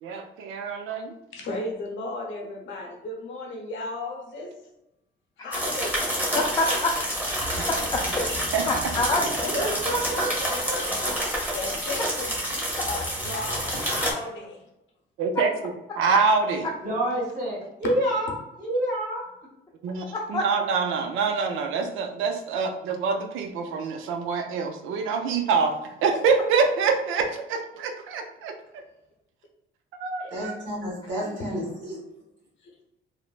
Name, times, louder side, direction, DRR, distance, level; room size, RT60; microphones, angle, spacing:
voice 1, 0.0-1.1 7.5-7.7 8.5-8.6 15.2-15.5 16.0-16.6 19.8-28.5 29.9-30.5, right 5 dB, 90° right, 5 dB, 0.4 m, -25 dB
voice 2, 1.3-4.5 5.4-6.0 10.8-11.1 11.5-12.3 12.9-14.6 30.2-30.3, left 2 dB, 75° left, 0 dB, 0.8 m, -35 dB
sound 1, 5.5-14.1, equal, 10° right, 1.0 m, -28 dB
voice 3, 6.3-6.9 7.9-8.4 8.7-9.5 9.9-10.0 20.1-20.4 31.2-31.3, left 2 dB, 20° left, -1 dB, 0.4 m, -27 dB
voice 4, 9.5-11.2 30.3-32.0, right 1 dB, 70° right, -4 dB, 1.2 m, -31 dB
voice 5, 16.8-19.2, right 1 dB, 40° right, -6 dB, 1.4 m, -27 dB
3.1 x 2.0 x 2.3 m, 0.88 s
cardioid pair, 90°, 20 cm